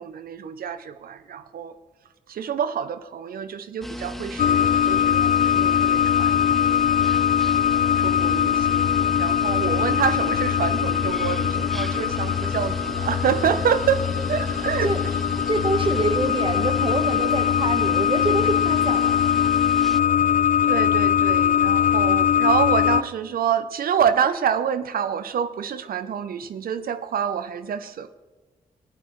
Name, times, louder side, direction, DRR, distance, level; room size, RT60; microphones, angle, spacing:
voice 1, 0.0-1.7 2.3-7.1 8.0-14.0 14.3-14.9 20.6-28.1, right 8 dB, 70° right, 0.7 m, -27 dB
sound 1, 3.8-20.0, equal, ahead, 0.5 m, -35 dB
sound 2, 4.4-23.0, left 9 dB, 55° left, 0.4 m, -21 dB
voice 2, 15.5-19.3, right 2 dB, 35° right, 1.1 m, -26 dB
19.0 x 8.9 x 3.1 m
supercardioid pair, 45°, 16 cm